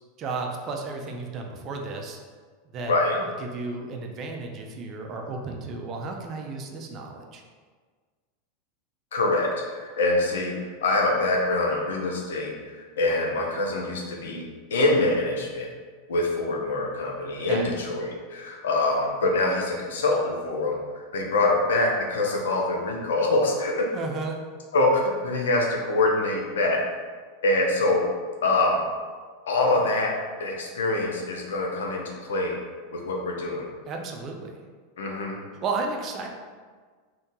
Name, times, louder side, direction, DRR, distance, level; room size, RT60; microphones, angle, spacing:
voice 1, 0.2-2.2 2.7-2.9 3.4-7.4 17.5-17.7 23.9-24.4 33.9-34.6 35.6-36.3, right 3 dB, 40° right, 2 dB, 0.5 m, -33 dB
voice 2, 9.1-10.5 10.8-14.4 14.7-15.7 16.1-23.9 24.7-26.8 27.4-28.0 28.4-28.8 29.5-30.1 30.4-32.6 32.9-33.7 35.0-35.4, left 2 dB, 85° left, 0 dB, 0.7 m, -25 dB
2.7 x 2.7 x 3.6 m, 1.5 s
hypercardioid pair, 115°, 0 cm